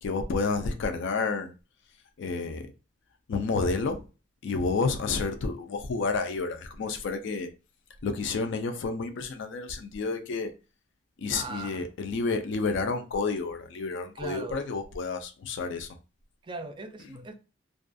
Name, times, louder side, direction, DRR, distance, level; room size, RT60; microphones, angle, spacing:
voice 1, 0.0-1.5 2.2-2.7 3.3-4.0 4.4-7.5 8.0-10.5 11.2-16.0, left 4 dB, 65° left, 0.4 m, -30 dB
voice 2, 11.3-11.8 14.2-14.6 16.4-17.3, right 3 dB, 25° right, 0.3 m, -39 dB
2.4 x 2.3 x 2.5 m
head